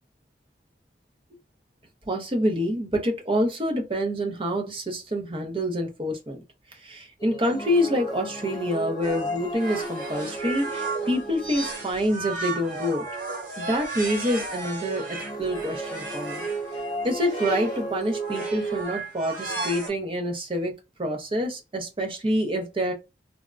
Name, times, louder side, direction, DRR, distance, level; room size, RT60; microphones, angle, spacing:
voice 1, 2.1-6.4 6.7-13.1 13.6-15.1 15.4-16.4 17.0-20.7 21.0-22.9, equal, 30° right, 0.7 m, -27 dB
sound 1, 7.2-12.3 14.8-18.8, right 2 dB, 20° left, 0.4 m, -34 dB
sound 2, 9.0-16.6 17.2-17.8 18.2-19.9, right 3 dB, 45° right, 1.2 m, -34 dB
3.4 x 2.1 x 2.5 m
head